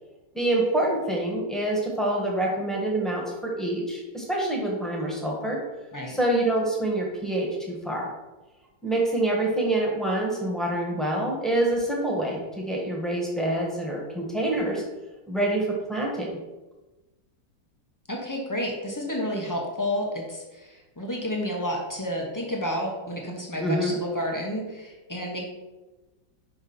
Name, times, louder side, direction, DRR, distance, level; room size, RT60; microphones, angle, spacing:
voice 1, 0.3-5.6 6.1-8.1 8.8-14.8 15.3-16.3 23.6-23.9, right 1 dB, ahead, -3 dB, 1.1 m, -26 dB
voice 2, 18.1-25.4, equal, 25° left, -1 dB, 0.4 m, -30 dB
5.4 x 4.6 x 5.4 m, 1.1 s
omnidirectional pair, 2.1 m